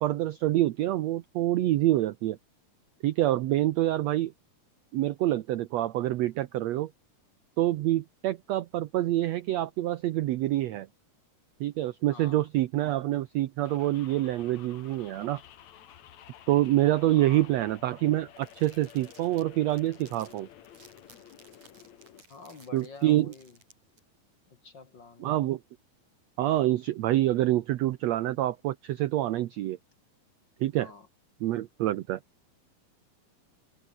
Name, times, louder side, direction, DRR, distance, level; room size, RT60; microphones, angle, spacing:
voice 1, 0.0-2.4 3.0-4.3 4.9-6.9 7.6-10.9 11.6-15.4 16.5-20.5 22.7-23.3 25.2-25.6 26.4-29.8 30.6-30.9 31.4-32.2, right 14 dB, 75° right, 1.6 m, -26 dB
voice 2, 12.1-12.5 17.1-17.5 22.3-23.6 24.5-25.3 30.8-31.1, left 4 dB, 40° left, 2.3 m, -48 dB
sound 1, 13.6-22.2, left 10 dB, 60° left, 2.7 m, -52 dB
sound 2, 18.4-24.0, right 3 dB, 55° right, 9.5 m, -58 dB
open air
omnidirectional pair, 3.9 m